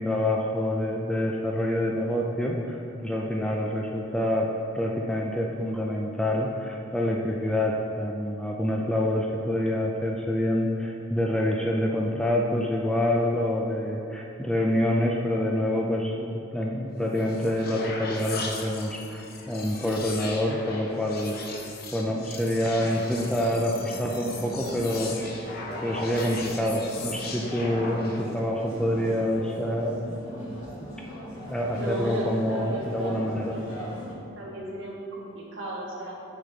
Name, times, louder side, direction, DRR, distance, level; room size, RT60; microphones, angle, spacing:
voice 1, 0.0-21.4 21.9-25.2 25.8-30.2 31.5-33.6, left 1 dB, 5° left, -1 dB, 0.4 m, -27 dB
sound 1, 16.9-28.4, left 3 dB, 45° left, 0.7 m, -38 dB
sound 2, 22.6-34.1, equal, 75° left, 1.8 m, -40 dB
voice 2, 31.7-33.8 34.3-36.1, right 1 dB, 60° right, -4 dB, 1.5 m, -35 dB
7.5 x 6.2 x 3.9 m, 2.7 s
head